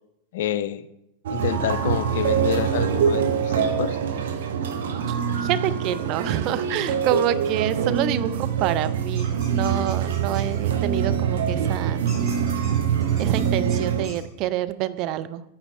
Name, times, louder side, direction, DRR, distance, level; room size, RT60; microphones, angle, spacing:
voice 1, 0.3-0.8 1.3-4.0, left 11 dB, 55° left, 0.4 m, -28 dB
sound 1, 1.3-14.1, right 7 dB, 60° right, 0.8 m, -24 dB
voice 2, 5.1-12.0 13.2-15.4, right 12 dB, 40° right, 0.4 m, -27 dB
sound 2, 9.1-10.6 12.1-14.2, equal, 10° right, 3.4 m, -45 dB
9.1 x 4.5 x 5.3 m
figure-of-eight pair, 90°, 0 cm